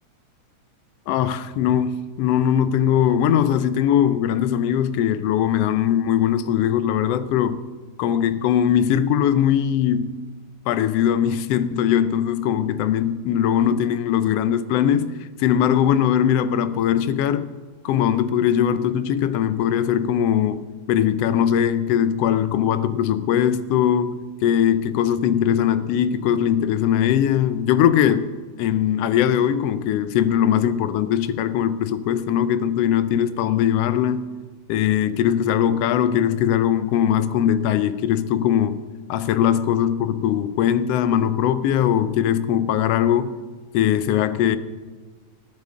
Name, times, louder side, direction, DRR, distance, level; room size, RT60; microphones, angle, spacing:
voice 1, 1.1-7.6 8.0-10.2 10.7-17.5 17.8-28.3 28.6-34.3 34.7-38.8 39.1-43.4 43.7-44.6, left 9 dB, 80° left, 1.4 m, -20 dB
21.0 x 14.5 x 3.7 m
omnidirectional pair, 3.5 m